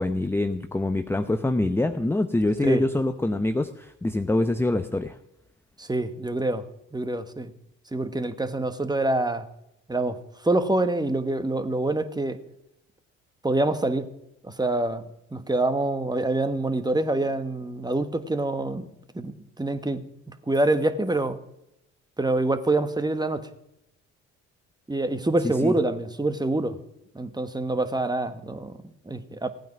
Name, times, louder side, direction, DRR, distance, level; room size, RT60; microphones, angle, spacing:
voice 1, 0.0-5.2 25.4-25.7, left 2 dB, 5° left, 8 dB, 0.7 m, -25 dB
voice 2, 5.8-6.6 6.9-7.5 7.9-9.5 9.9-10.2 10.4-12.4 13.4-14.1 14.4-18.9 19.1-20.0 20.5-21.4 22.2-23.5 24.9-26.8 27.1-29.5, right 2 dB, 10° right, 10 dB, 1.2 m, -26 dB
15.5 x 9.1 x 5.9 m, 0.86 s
hypercardioid pair, 60°, 37 cm